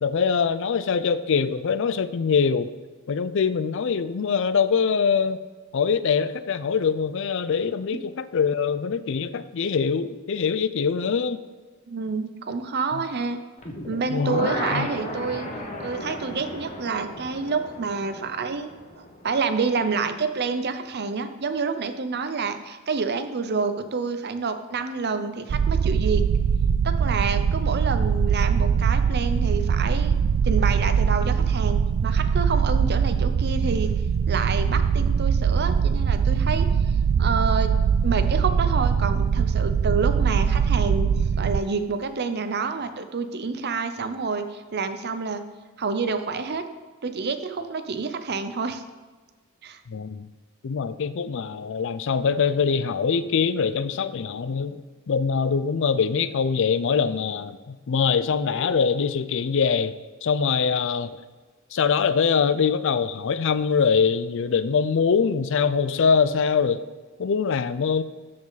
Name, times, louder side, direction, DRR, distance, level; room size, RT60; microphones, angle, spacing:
voice 1, 0.0-2.7 3.1-5.4 5.7-11.4 12.9-13.0 14.1-14.9 49.9-50.3 50.6-59.9 60.2-61.2 61.7-66.8 67.2-68.0, left 6 dB, 65° left, 14 dB, 0.4 m, -23 dB
voice 2, 11.9-13.4 13.9-15.5 15.8-18.7 19.0-26.2 26.8-30.2 30.4-33.9 34.3-36.7 37.2-37.8 38.0-41.1 41.4-45.4 45.8-46.6 47.0-48.8 49.6-49.8, right 4 dB, 50° right, 9 dB, 0.7 m, -28 dB
sound 1, 13.6-19.6 19.9-20.0, left 1 dB, 35° left, 1.3 m, -34 dB
sound 2, 25.5-41.6, right 6 dB, 90° right, 0.4 m, -22 dB
13.0 x 5.1 x 4.0 m, 1.4 s
head